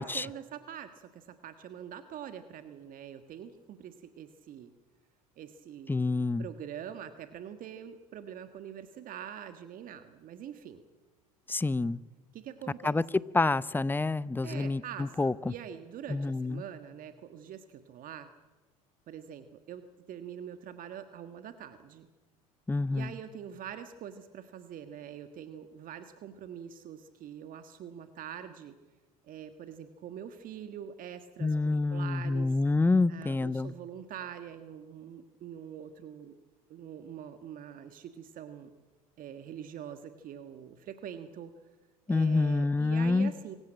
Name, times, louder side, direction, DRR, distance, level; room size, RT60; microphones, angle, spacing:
voice 1, 0.1-4.7 5.4-10.8 12.3-13.0 14.4-18.3 19.1-22.1 22.9-28.7 29.3-32.6 33.1-36.3 36.7-38.7 39.2-41.5 42.1-43.6, right 9 dB, 50° right, 9 dB, 1.5 m, -44 dB
voice 2, 5.9-6.4 11.5-12.0 12.8-13.0 13.3-15.5 16.1-16.6 22.7-23.1 31.4-33.7 42.1-43.3, left 3 dB, 10° left, 19 dB, 0.7 m, -27 dB
25.5 x 15.0 x 8.9 m, 1.3 s
hypercardioid pair, 75°, 18 cm